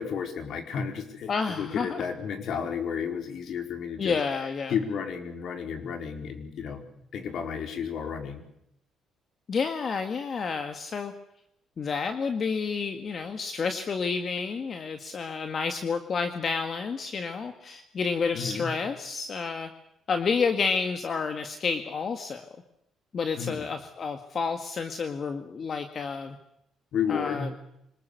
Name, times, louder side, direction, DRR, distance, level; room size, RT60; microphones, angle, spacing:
voice 1, 0.0-1.3 1.6-4.2 4.7-6.8 7.1-8.4 18.3-18.7 23.4-23.6 26.9-27.5, left 7 dB, 60° left, 6 dB, 4.5 m, -32 dB
voice 2, 1.3-2.0 4.0-4.7 9.5-11.1 11.8-19.7 20.1-22.5 23.1-26.4 27.1-27.5, left 5 dB, 40° left, 7 dB, 1.9 m, -30 dB
25.5 x 20.5 x 6.8 m, 0.78 s
cardioid pair, 130°, 0 cm